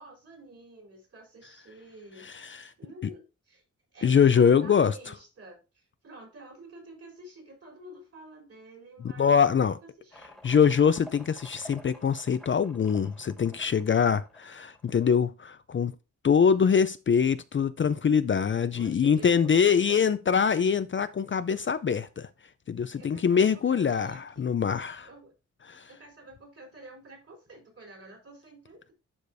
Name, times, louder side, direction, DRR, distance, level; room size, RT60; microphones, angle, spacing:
voice 1, 0.0-2.3 2.8-3.6 3.9-10.4 18.7-20.1 23.0-24.5 25.0-25.3 25.9-28.9, right 1 dB, 50° right, 4.0 m, -49 dB
voice 2, 2.2-2.7 4.0-4.9 9.2-9.8 10.4-15.9 16.2-22.3 22.7-25.1 25.7-25.8, left 7 dB, 40° left, 0.4 m, -24 dB
sound 1, 10.1-15.1, equal, ahead, 1.6 m, -51 dB
11.5 x 4.9 x 2.6 m
wide cardioid pair, 130°, 30 cm